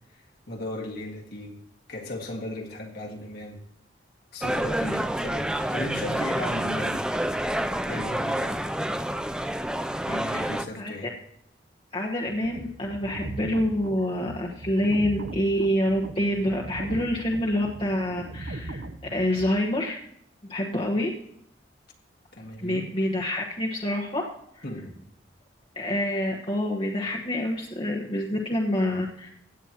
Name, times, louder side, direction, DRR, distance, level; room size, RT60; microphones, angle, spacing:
voice 1, 0.1-1.6 1.9-3.6 4.3-7.1 7.9-8.6 10.1-11.1 22.3-23.0 24.6-25.0, left 1 dB, 60° left, 1.8 m, -36 dB
sound 1, 4.4-10.6, right 1 dB, 5° right, 0.4 m, -28 dB
voice 2, 11.9-18.8 19.1-20.0 20.5-21.1 22.6-24.2 24.6-24.7 25.7-29.3, left 1 dB, 30° left, 1.2 m, -27 dB
sound 2, 12.2-19.5, right 2 dB, 70° right, 0.8 m, -39 dB
16.0 x 9.1 x 2.9 m
head